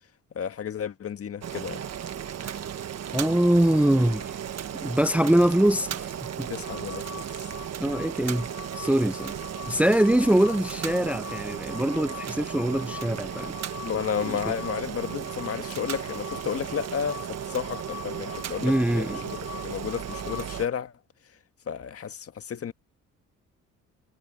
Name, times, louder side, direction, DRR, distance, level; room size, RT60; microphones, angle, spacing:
voice 1, 0.3-1.8 6.5-7.5 13.8-20.9 21.7-22.7, left 8 dB, 50° left, 1.7 m, -32 dB
Boiling, 1.4-20.7, right 9 dB, 55° right, 1.5 m, -35 dB
voice 2, 3.1-4.4 4.8-6.1 6.4-6.5 7.8-8.5 8.8-9.3 9.7-13.5 14.3-14.4 18.6-19.2, right 1 dB, 5° right, 0.6 m, -23 dB
sound 1, 6.6-20.6, left 12 dB, 80° left, 4.8 m, -44 dB
cardioid pair, 90°, 30 cm